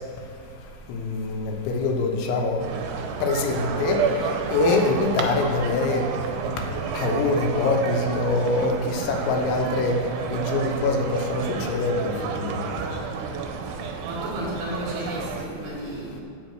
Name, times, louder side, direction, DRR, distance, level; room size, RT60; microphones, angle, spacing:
voice 1, 0.9-1.3 1.7-2.6 3.2-4.0 4.5-6.0 6.9-10.0 10.3-11.0 11.3-11.4 11.7-12.1 12.4-12.5, left 3 dB, 80° left, 2 dB, 3.2 m, -23 dB
sound 1, 2.6-15.5, right 6 dB, 85° right, 3.2 m, -30 dB
voice 2, 14.0-16.2, equal, 60° right, -5 dB, 2.8 m, -33 dB
11.5 x 5.2 x 7.8 m, 2.5 s
omnidirectional pair, 5.4 m